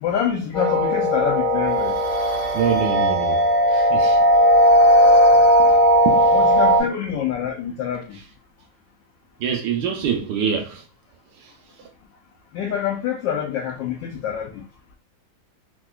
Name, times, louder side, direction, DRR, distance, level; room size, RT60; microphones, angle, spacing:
voice 1, 0.0-1.9 6.3-8.2 12.5-14.6, left 8 dB, 75° left, 1.2 m, -26 dB
sound 1, 0.5-6.8, equal, 45° left, 1.6 m, -16 dB
voice 2, 2.5-4.2 5.6-5.8 6.0-6.4 9.4-10.8 11.3-11.5, right 7 dB, 75° right, 1.1 m, -26 dB
3.7 x 2.5 x 2.3 m
omnidirectional pair, 2.1 m